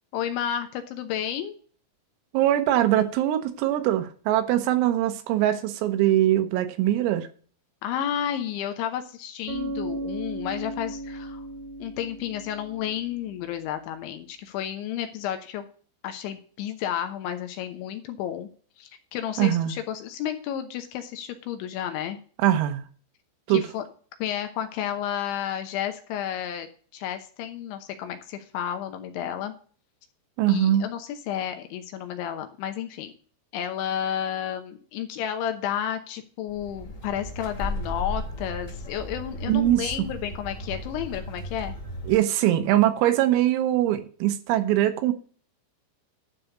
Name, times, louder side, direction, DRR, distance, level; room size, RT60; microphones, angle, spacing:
voice 1, 0.1-1.6 7.8-11.4 11.8-15.7 16.0-18.5 18.8-22.2 23.5-23.8 24.2-29.5 30.5-33.1 33.5-41.8, left 10 dB, 75° left, 3.1 m, -31 dB
voice 2, 2.3-7.3 19.4-19.8 22.4-22.8 23.5-23.6 30.4-30.9 39.5-40.1 42.1-45.1, right 13 dB, 85° right, 3.8 m, -22 dB
Bass guitar, 9.5-13.3, right 1 dB, 70° right, 3.0 m, -36 dB
sound 1, 36.5-42.1, left 1 dB, 20° left, 2.3 m, -35 dB
12.0 x 4.2 x 7.8 m
omnidirectional pair, 6.0 m